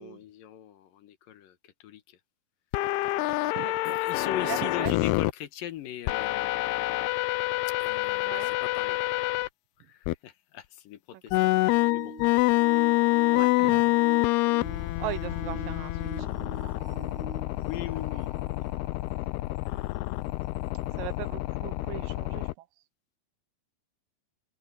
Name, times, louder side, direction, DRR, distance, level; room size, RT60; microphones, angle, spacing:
voice 1, 0.0-2.2 3.9-6.6 7.8-9.0 9.8-12.2 17.6-18.6 20.9-21.1, left 12 dB, 70° left, 2.7 m, -40 dB
sound 1, 2.7-5.3 6.1-9.5 10.1-10.2 11.3-22.5, left 20 dB, 90° left, 2.7 m, -27 dB
voice 2, 3.4-4.9 8.3-8.5 11.3-11.4 12.7-12.9 13.3-14.0 14.7-16.4 19.7-19.9 20.9-22.7, right 14 dB, 75° right, 2.2 m, -39 dB
sound 2, 11.3-18.9 19.6-19.7 20.8-20.9, right 4 dB, 55° right, 1.7 m, -45 dB
omnidirectional pair, 4.5 m